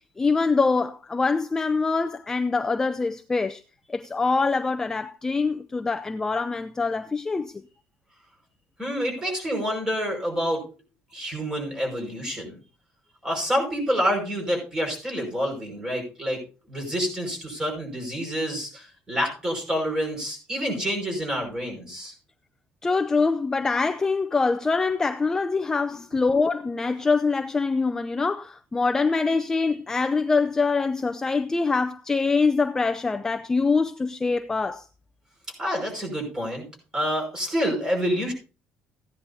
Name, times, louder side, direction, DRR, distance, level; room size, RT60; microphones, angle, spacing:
voice 1, 0.2-3.6 3.9-7.5 22.8-34.9, left 4 dB, 15° left, 0.5 m, -24 dB
voice 2, 8.8-10.7 11.1-12.5 13.2-16.4 16.7-22.1 35.6-36.7 36.9-38.3, equal, 15° right, 5.6 m, -28 dB
15.5 x 10.5 x 2.8 m
cardioid pair, 150°, 4 cm